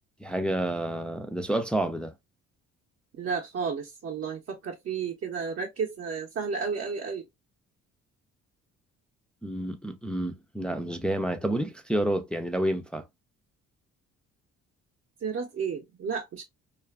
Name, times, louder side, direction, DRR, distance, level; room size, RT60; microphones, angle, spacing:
voice 1, 0.2-2.1 9.4-13.1, right 1 dB, 5° left, 0.3 m, -29 dB
voice 2, 3.1-7.2 15.2-16.4, right 5 dB, 45° right, 0.6 m, -32 dB
2.4 x 2.4 x 2.2 m
cardioid pair, 90°, 30 cm